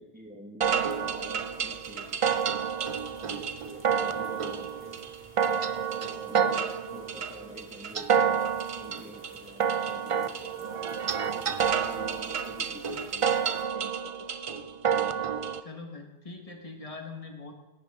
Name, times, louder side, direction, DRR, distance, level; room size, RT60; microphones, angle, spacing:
voice 1, 0.0-2.4 3.2-5.1 5.9-6.6 6.9-10.9 11.3-14.7, equal, 10° right, 1 dB, 1.6 m, -48 dB
sound 1, 0.6-15.6, right 7 dB, 45° right, 0.4 m, -29 dB
sound 2, 0.7-13.6, equal, 15° left, 2.2 m, -55 dB
voice 2, 15.6-17.5, left 3 dB, 35° left, 2 dB, 1.7 m, -42 dB
17.0 x 11.0 x 3.7 m, 1.1 s
omnidirectional pair, 1.1 m